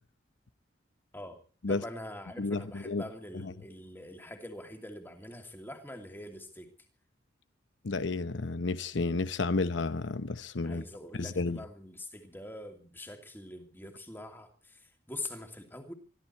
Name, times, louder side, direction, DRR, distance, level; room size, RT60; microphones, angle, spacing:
voice 1, 1.7-6.7 10.6-15.9, left 1 dB, 10° left, 2.7 m, -44 dB
voice 2, 2.4-3.0 3.4-3.5 7.8-10.8 11.2-11.6, left 3 dB, 75° left, 0.8 m, -31 dB
23.5 x 14.0 x 4.4 m
head